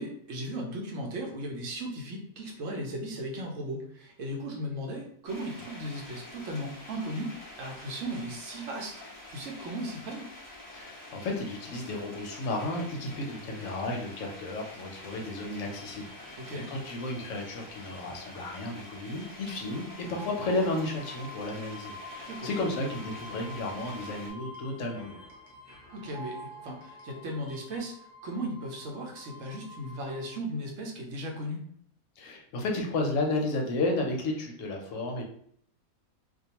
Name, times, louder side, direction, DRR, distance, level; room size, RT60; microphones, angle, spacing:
voice 1, 0.0-8.9 9.3-10.3 16.4-16.7 22.3-22.5 25.9-31.6, right 1 dB, 70° right, 0 dB, 0.9 m, -36 dB
sound 1, 5.3-24.3, left 1 dB, 15° left, 1.0 m, -47 dB
voice 2, 10.7-16.4 16.7-25.2 32.2-35.2, left 2 dB, 70° left, 1 dB, 0.9 m, -33 dB
sound 2, 15.6-27.8, right 2 dB, 40° left, 0.6 m, -52 dB
sound 3, 19.5-30.4, left 2 dB, ahead, 0.5 m, -49 dB
2.4 x 2.2 x 2.8 m, 0.64 s
omnidirectional pair, 1.5 m